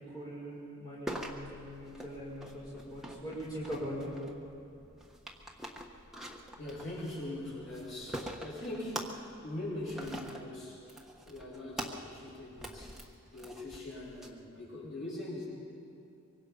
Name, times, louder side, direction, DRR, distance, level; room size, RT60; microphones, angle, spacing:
voice 1, 0.0-4.1, equal, 15° left, -8 dB, 5.8 m, -41 dB
sound 1, 1.1-14.3, equal, ahead, 1.2 m, -45 dB
voice 2, 6.6-10.8 11.3-13.0 13.3-15.5, left 1 dB, 55° left, -6 dB, 7.7 m, -41 dB
24.5 x 24.0 x 5.4 m, 2.6 s
head